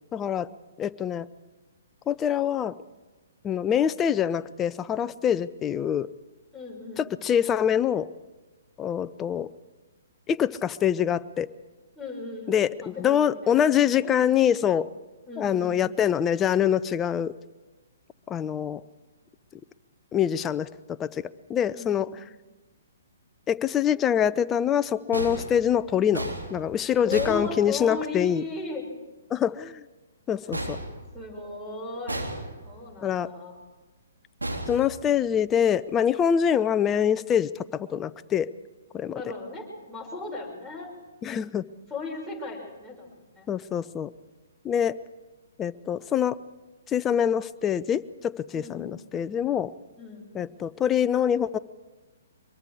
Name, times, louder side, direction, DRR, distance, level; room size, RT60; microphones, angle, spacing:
voice 1, 0.1-0.5 0.8-1.3 2.1-2.8 3.4-6.1 7.0-8.1 8.8-9.5 10.3-11.5 12.5-14.9 15.4-17.3 18.3-18.8 20.1-20.7 21.0-22.1 23.5-28.4 29.3-29.8 30.3-30.8 33.0-33.3 34.7-38.5 38.9-39.1 41.2-41.7 43.5-44.1 44.6-45.0 45.6-46.4 46.9-49.7 50.3-51.6, left 9 dB, 20° left, 14 dB, 0.6 m, -25 dB
voice 2, 6.5-7.1 12.0-14.1 15.3-15.9 21.7-22.2 27.0-28.9 30.5-30.8 31.1-32.3 32.6-33.6 39.1-40.9 41.9-43.5 48.5-48.9 50.0-50.3, left 3 dB, ahead, 1 dB, 6.0 m, -36 dB
sound 1, 25.1-28.2 30.5-31.6 32.1-32.9 34.4-35.5, right 1 dB, 90° right, 3.4 m, -35 dB
24.0 x 22.5 x 4.9 m, 1.2 s
figure-of-eight pair, 125°, 0 cm